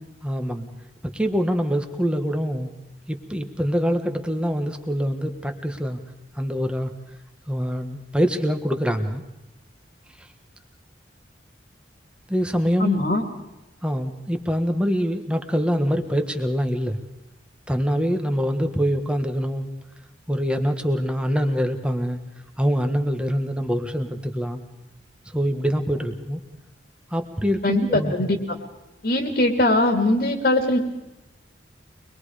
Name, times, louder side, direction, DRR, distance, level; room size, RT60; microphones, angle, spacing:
voice 1, 0.2-0.7 1.0-2.7 3.1-6.0 6.4-6.9 7.5-9.2 12.3-13.0 13.8-17.0 17.7-19.7 20.3-22.2 22.6-24.6 25.3-26.4 27.1-28.3, equal, 5° right, 6 dB, 1.4 m, -24 dB
voice 2, 12.8-13.2 27.6-28.6 29.0-30.8, left 1 dB, 55° left, 4 dB, 2.3 m, -21 dB
24.5 x 21.5 x 5.0 m, 0.95 s
head